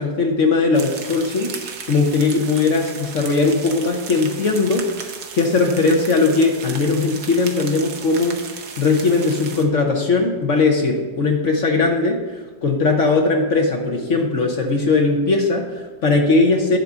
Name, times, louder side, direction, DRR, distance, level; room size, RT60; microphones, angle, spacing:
voice 1, 0.0-1.6 1.8-16.8, left 3 dB, 55° left, 2 dB, 0.8 m, -19 dB
sound 1, 0.7-9.6, right 6 dB, 60° right, 1.2 m, -35 dB
10.5 x 3.9 x 7.1 m, 1.3 s
omnidirectional pair, 2.3 m